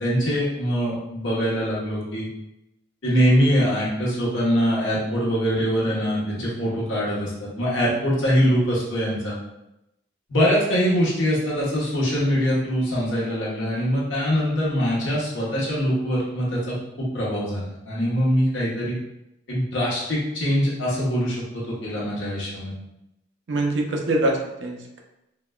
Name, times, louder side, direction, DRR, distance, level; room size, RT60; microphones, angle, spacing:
voice 1, 0.0-2.3 3.0-9.4 10.3-19.0 19.5-22.7, equal, 85° left, -6 dB, 1.1 m, -23 dB
voice 2, 23.5-25.0, right 1 dB, 70° right, 1 dB, 0.5 m, -24 dB
3.9 x 2.2 x 2.3 m, 0.89 s
head